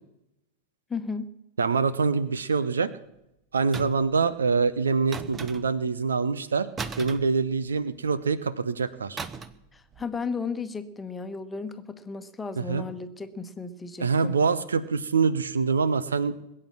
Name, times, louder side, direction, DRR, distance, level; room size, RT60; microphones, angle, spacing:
voice 1, 0.9-1.3 9.7-14.4, left 4 dB, 15° left, 9 dB, 1.3 m, -34 dB
voice 2, 1.6-2.9 3.5-6.7 7.0-9.2 12.6-12.8 14.0-16.3, right 5 dB, 70° right, 16 dB, 0.8 m, -25 dB
sound 1, 3.7-4.2 5.1-5.9 6.8-7.9 9.2-9.7 9.9-10.2, right 4 dB, 20° right, 1.0 m, -37 dB
21.5 x 8.7 x 7.4 m, 0.86 s
figure-of-eight pair, 90°, 0 cm